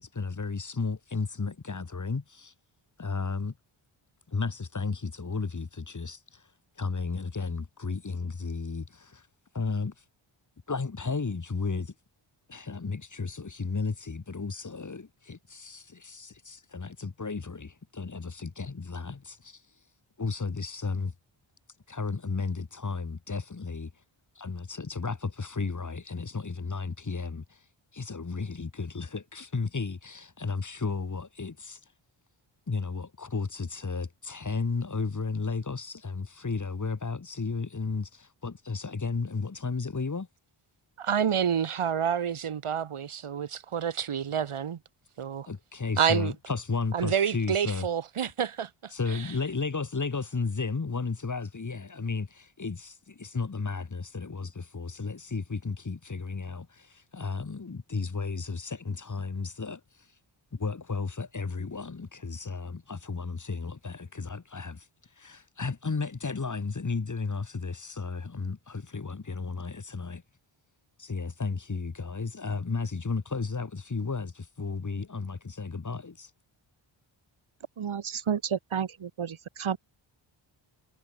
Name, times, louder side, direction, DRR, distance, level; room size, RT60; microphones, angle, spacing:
voice 1, 0.0-2.5 3.0-3.5 4.3-6.4 6.8-9.2 9.5-9.9 10.7-11.9 12.5-19.6 20.2-21.1 21.9-23.9 24.4-27.6 27.9-31.8 32.7-40.3 45.5-47.9 48.9-59.8 60.5-64.9 65.2-70.2 71.0-76.3, left 4 dB, 35° left, 7.6 m, -33 dB
voice 2, 41.0-44.8 45.2-45.5 46.0-46.3 46.9-49.3, right 8 dB, 90° right, 7.9 m, -28 dB
voice 3, 77.8-79.8, right 7 dB, 75° right, 4.6 m, -31 dB
wide cardioid pair, 125°, 49 cm